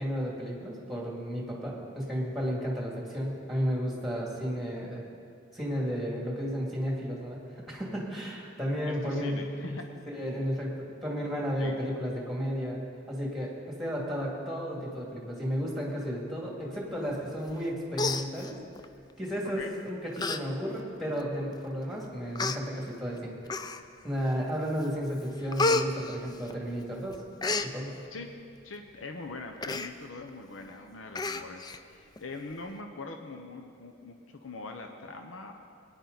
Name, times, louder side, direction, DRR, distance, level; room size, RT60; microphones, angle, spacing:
voice 1, 0.0-5.0 5.5-7.4 7.7-9.4 10.1-12.8 13.1-18.6 19.2-23.6 24.0-27.2 27.6-28.0, equal, ahead, -3 dB, 2.4 m, -33 dB
voice 2, 8.8-9.9 11.6-12.0 19.5-19.7 28.1-28.3 28.6-35.5, left 3 dB, 90° left, 4 dB, 0.8 m, -42 dB
Human voice, 17.5-17.7 17.9-18.9 19.6-19.8 20.2-20.4 20.8-20.9 21.7-21.8 22.4-22.6 23.5-24.0 24.5-24.9 25.1-26.8 27.1-27.7 29.6-29.9 30.3-30.4 30.7-30.8 31.2-31.8 32.2-32.3, left 3 dB, 20° left, 0.4 m, -30 dB
19.5 x 9.9 x 4.0 m, 2.4 s
head